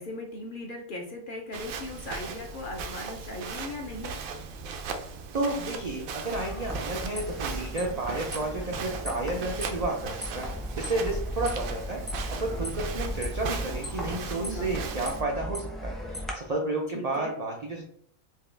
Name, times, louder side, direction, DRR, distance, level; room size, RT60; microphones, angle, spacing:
voice 1, 0.0-4.2 14.3-14.8 16.9-17.4, left 1 dB, 50° left, 1 dB, 0.6 m, -38 dB
Walk footsteps, 1.5-15.2, right 5 dB, 85° right, 1.0 m, -38 dB
voice 2, 5.3-17.8, right 2 dB, 65° right, 1 dB, 0.4 m, -32 dB
sound 1, 6.3-16.3, equal, ahead, 0.4 m, -36 dB
4.5 x 2.3 x 3.3 m, 0.66 s
omnidirectional pair, 1.4 m